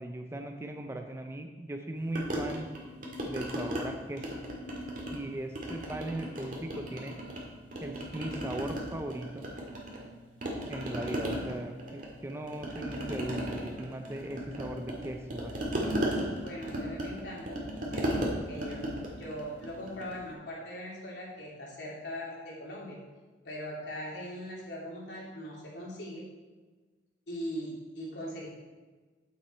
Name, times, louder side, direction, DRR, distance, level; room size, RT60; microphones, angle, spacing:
voice 1, 0.0-2.7 3.2-4.4 5.1-7.2 7.8-9.5 10.7-15.7, right 1 dB, 15° right, 5 dB, 0.6 m, -38 dB
sound 1, 2.2-3.8 4.2-5.2 5.6-7.4 7.7-10.1 10.4-20.2, equal, 50° right, 2.0 m, -35 dB
voice 2, 16.4-23.0 23.4-26.2 27.3-28.5, equal, 75° left, -4 dB, 3.0 m, -40 dB
9.1 x 7.4 x 4.5 m, 1.3 s
head